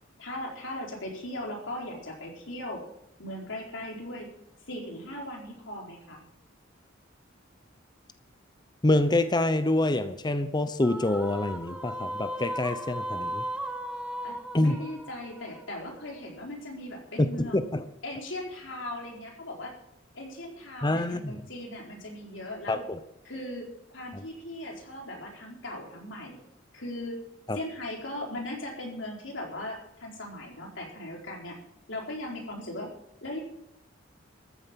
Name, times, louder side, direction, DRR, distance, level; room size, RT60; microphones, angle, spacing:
voice 1, 0.2-2.8 3.2-4.3 4.7-6.2 14.2-17.7 18.0-19.7 20.1-22.8 23.2-26.4 26.7-27.2 27.5-31.6 31.9-32.9 33.2-33.4, left 1 dB, 70° left, 0 dB, 4.5 m, -38 dB
voice 2, 8.8-13.4 14.5-14.8 17.4-17.8 20.8-21.4 22.7-23.0 24.1-24.2 27.5-27.6, left 2 dB, 20° left, 10 dB, 0.8 m, -26 dB
sound 1, 10.8-16.2, equal, 5° right, 1.3 m, -37 dB
14.0 x 9.1 x 7.4 m, 0.80 s
head